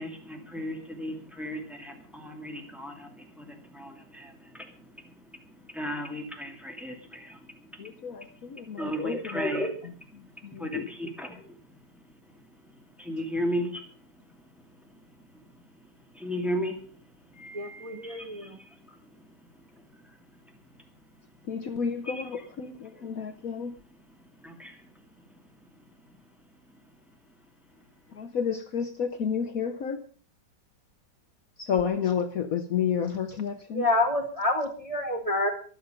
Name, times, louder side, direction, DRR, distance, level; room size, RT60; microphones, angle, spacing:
voice 1, 0.0-7.9 8.3-8.5 8.7-11.6 12.3-14.1 14.4-14.6 15.2-15.5 16.1-16.9 17.3-17.6 18.0-19.3 19.7-20.4 20.6-20.7 22.1-22.5 22.9-23.2 23.9-24.0 24.4-24.9 25.2-25.4 25.7-25.8, equal, ahead, 2 dB, 2.6 m, -36 dB
voice 2, 7.8-9.4 10.4-10.9 17.4-18.2 21.5-23.8 28.1-30.0 31.6-33.9, left 7 dB, 55° left, 9 dB, 1.2 m, -31 dB
voice 3, 17.5-18.6 33.7-35.5, left 2 dB, 20° right, 4 dB, 1.5 m, -28 dB
23.5 x 8.1 x 5.2 m, 0.42 s
omnidirectional pair, 1.9 m